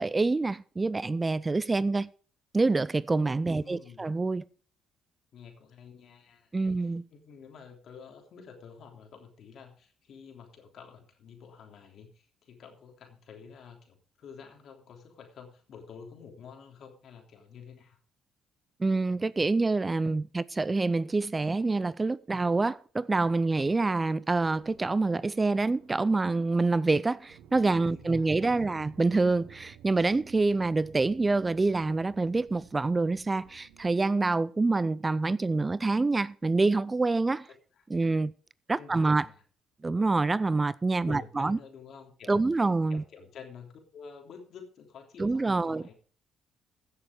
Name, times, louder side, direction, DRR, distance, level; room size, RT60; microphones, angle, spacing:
voice 1, 0.0-2.1 2.5-4.4 6.5-7.0 18.8-37.5 37.9-38.3 38.7-39.3 39.8-41.6 42.3-43.0 45.2-45.8, right 3 dB, 25° right, 0.4 m, -26 dB
voice 2, 3.5-4.0 5.3-18.0 27.9-28.8 38.7-39.4 41.0-42.5 42.9-45.9, left 6 dB, 60° left, 3.3 m, -49 dB
sound 1, 24.4-33.9, right 9 dB, 80° right, 1.1 m, -55 dB
15.5 x 7.0 x 4.9 m
supercardioid pair, 60°, 0 cm